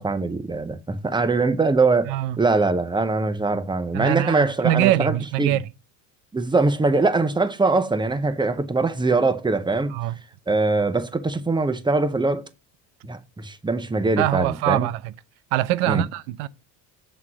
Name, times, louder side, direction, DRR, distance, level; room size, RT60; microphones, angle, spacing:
voice 1, 0.0-5.6 6.3-9.9 10.5-12.5 13.0-14.9 15.9-16.0, right 3 dB, 10° right, 0.8 m, -22 dB
voice 2, 2.1-2.4 3.9-5.6 9.9-10.2 14.2-15.1 15.5-16.5, right 14 dB, 80° right, 0.8 m, -23 dB
8.0 x 3.7 x 6.1 m
supercardioid pair, 105°, 48 cm